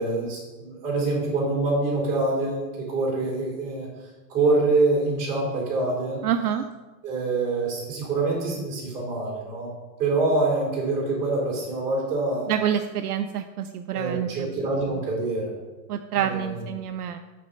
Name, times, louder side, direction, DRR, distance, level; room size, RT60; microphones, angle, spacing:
voice 1, 0.0-3.9 4.3-6.2 7.0-9.7 10.0-12.5 13.9-15.5 16.1-16.6, right 2 dB, 15° right, -4 dB, 3.1 m, -25 dB
voice 2, 6.2-6.7 12.5-14.5 15.9-17.2, right 9 dB, 65° right, 6 dB, 0.6 m, -27 dB
8.3 x 4.3 x 6.6 m, 1.2 s
supercardioid pair, 175°, 49 cm